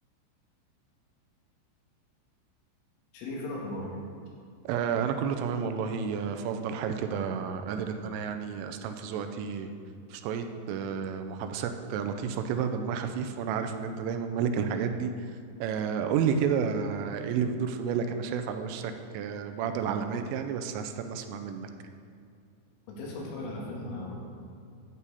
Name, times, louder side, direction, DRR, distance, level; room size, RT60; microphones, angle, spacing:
voice 1, 3.1-3.9 22.9-24.1, left 2 dB, 80° left, -3 dB, 4.5 m, -37 dB
voice 2, 4.7-9.7 10.1-21.7, right 6 dB, 85° right, 7 dB, 3.1 m, -31 dB
11.0 x 8.5 x 4.1 m, 2.5 s
omnidirectional pair, 5.8 m